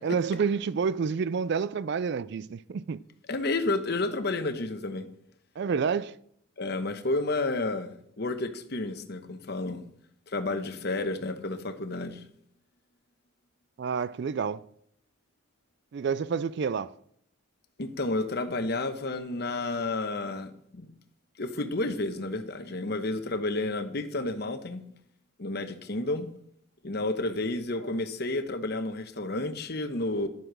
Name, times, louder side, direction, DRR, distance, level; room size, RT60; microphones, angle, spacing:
voice 1, 0.0-3.0 5.6-6.2 13.8-14.7 15.9-17.0, right 6 dB, 55° right, 0.3 m, -29 dB
voice 2, 3.3-5.1 6.6-9.9 10.3-12.2 17.8-20.9 21.4-24.8 25.4-26.3 26.8-30.3, left 2 dB, 50° left, 1.0 m, -31 dB
11.0 x 7.8 x 6.1 m
head